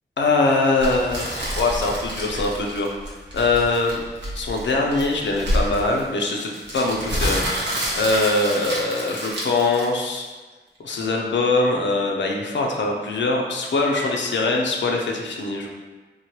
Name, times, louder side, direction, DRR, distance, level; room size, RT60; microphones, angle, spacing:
voice 1, 0.2-4.0 4.4-10.2 10.8-15.7, left 3 dB, 75° left, 0 dB, 0.5 m, -23 dB
sound 1, 0.8-10.3, equal, 75° right, 0.7 m, -28 dB
3.1 x 2.1 x 2.8 m, 1.3 s
cardioid pair, 45°, 19 cm